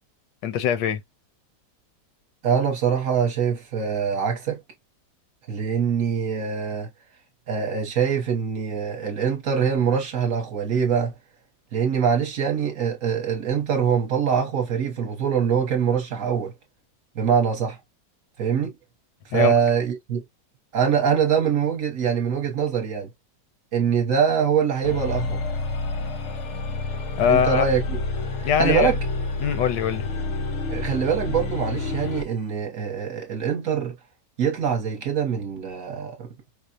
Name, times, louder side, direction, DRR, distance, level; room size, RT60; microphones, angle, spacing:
voice 1, 0.4-1.0 19.3-19.5 27.2-27.6 28.4-28.9 29.4-30.1, left 8 dB, 85° left, 1.3 m, -22 dB
voice 2, 2.4-4.6 5.5-6.9 7.5-11.1 11.7-16.5 17.1-17.8 18.4-18.7 19.2-20.2 20.7-23.1 23.7-25.4 27.3-28.0 28.4-29.0 30.7-34.0 34.4-36.3, right 7 dB, 55° right, 1.1 m, -23 dB
sound 1, 24.8-32.3, left 3 dB, 60° left, 0.8 m, -29 dB
4.9 x 2.1 x 2.6 m
omnidirectional pair, 1.9 m